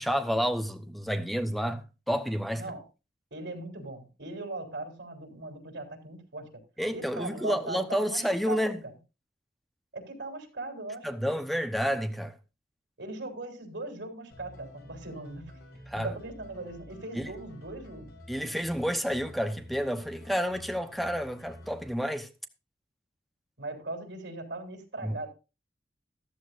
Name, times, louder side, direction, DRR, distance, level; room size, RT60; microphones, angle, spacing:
voice 1, 0.0-2.6 6.8-8.8 11.0-12.3 15.9-16.1 17.1-17.3 18.3-22.3 25.0-25.1, equal, ahead, 0.9 m, -30 dB
voice 2, 3.3-6.5 6.9-8.8 9.9-11.1 13.0-15.6 15.9-18.1 23.6-25.3, right 2 dB, 90° right, 3.7 m, -39 dB
sound 1, 14.3-21.9, left 1 dB, 65° left, 5.2 m, -50 dB
14.0 x 13.5 x 2.6 m
head